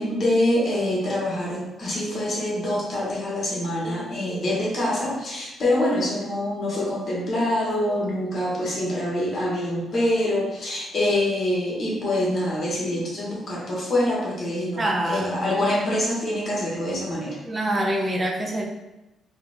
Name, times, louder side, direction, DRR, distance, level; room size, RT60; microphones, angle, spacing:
voice 1, 0.0-17.4, left 1 dB, 45° left, -5 dB, 1.4 m, -25 dB
voice 2, 14.8-15.5 17.4-18.7, right 1 dB, 30° right, 0 dB, 0.7 m, -25 dB
3.2 x 2.5 x 3.4 m, 0.97 s
cardioid pair, 90°, 0 cm